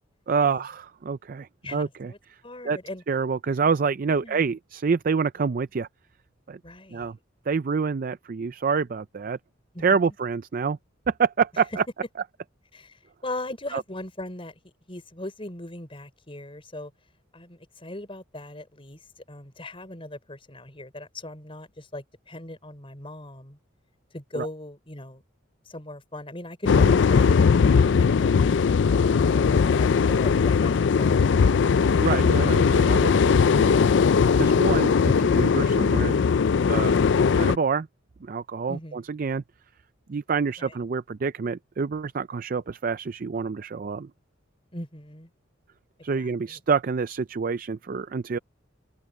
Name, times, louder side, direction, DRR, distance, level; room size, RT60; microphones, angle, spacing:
voice 1, 0.3-2.4 2.6-2.8 3.1-5.9 6.5-6.6 6.9-7.2 7.5-9.4 9.8-10.8 11.1-11.8 13.7-13.8 24.4-24.5 32.0-34.0 34.4-36.2 36.7-37.0 37.3-37.9 38.2-39.4 40.1-44.1 46.0-48.4, right 5 dB, 45° right, 0.4 m, -27 dB
voice 2, 1.6-2.2 2.4-3.0 4.1-4.4 6.6-7.1 9.7-10.1 12.7-14.6 14.9-16.9 17.3-23.6 24.1-25.2 25.7-31.6 34.4-34.5 38.7-39.0 40.6-40.7 44.7-45.3 46.2-46.3, left 1 dB, 30° left, 4.8 m, -39 dB
sound 1, 26.7-37.6, left 5 dB, 65° left, 0.4 m, -19 dB
open air
head